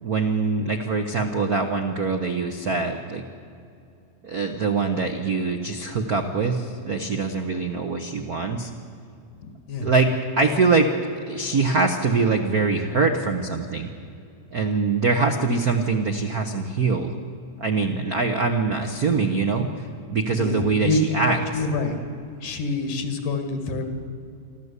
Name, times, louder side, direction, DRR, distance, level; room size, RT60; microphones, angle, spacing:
voice 1, 0.0-3.2 4.2-8.7 9.8-10.9 11.3-13.9 14.5-17.1 17.6-21.6, right 4 dB, 70° right, 5 dB, 0.8 m, -23 dB
voice 2, 9.4-9.9 20.3-21.0 21.3-22.0 22.4-23.9, left 3 dB, 80° left, 7 dB, 3.6 m, -27 dB
28.0 x 12.5 x 8.3 m, 2.5 s
omnidirectional pair, 3.5 m